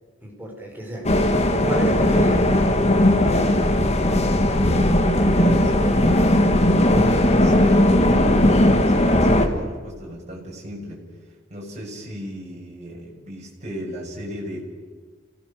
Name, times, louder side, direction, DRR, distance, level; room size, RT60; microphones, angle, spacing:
voice 1, 0.2-1.1 1.6-2.5 3.0-3.6, right 1 dB, 10° right, 0 dB, 5.1 m, -31 dB
sound 1, 1.0-9.5, left 1 dB, 35° left, 2.0 m, -18 dB
voice 2, 4.7-11.0 11.5-14.6, equal, 35° right, -2 dB, 6.5 m, -36 dB
29.5 x 17.5 x 6.8 m, 1.5 s
head